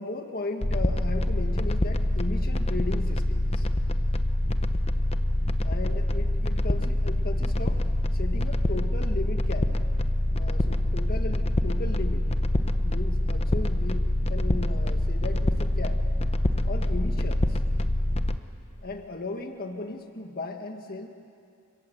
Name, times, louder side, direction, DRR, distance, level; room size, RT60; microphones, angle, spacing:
voice 1, 0.0-3.7 5.6-7.8 8.1-9.7 10.4-12.4 12.8-16.0 16.7-17.6 18.8-21.1, left 2 dB, 45° left, 5 dB, 1.7 m, -36 dB
sound 1, 0.6-18.4, left 1 dB, 30° left, 0.9 m, -25 dB
29.0 x 25.5 x 8.0 m, 2.4 s
head